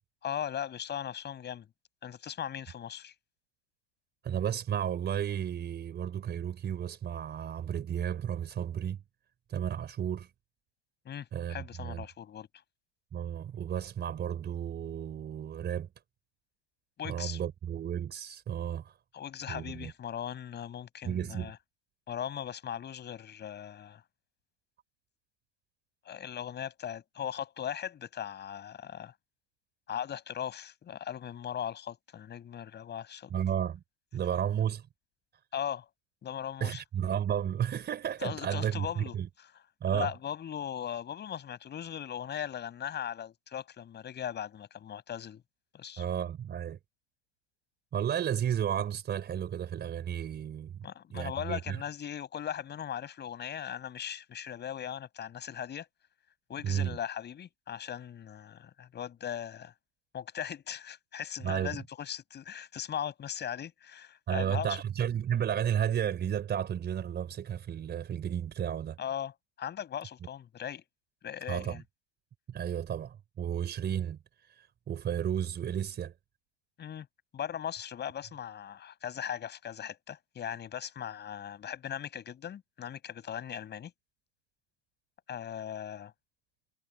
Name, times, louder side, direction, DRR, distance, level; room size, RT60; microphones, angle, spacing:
voice 1, 0.2-1.7 2.0-3.1 11.1-12.5 17.0-17.4 19.1-21.6 22.1-24.0 26.1-29.1 29.9-33.3 35.5-35.9 36.2-36.8 38.2-39.5 39.9-45.4 45.7-46.0 50.8-55.9 56.5-59.7 60.1-64.8 69.0-70.8 71.2-71.8 76.8-77.1 77.3-83.9 85.3-86.1, left 9 dB, 20° left, 7.2 m, -39 dB
voice 2, 4.2-9.0 9.5-10.3 11.3-12.0 13.1-15.9 17.0-18.9 19.5-19.9 21.0-21.5 33.3-33.8 34.1-34.9 36.6-39.3 39.8-40.1 46.0-46.8 47.9-50.8 51.1-51.8 56.6-57.0 61.4-61.8 64.3-69.0 71.5-71.8 72.5-74.2 74.6-76.1, right 9 dB, 20° right, 4.6 m, -33 dB
hypercardioid pair, 115°, 49 cm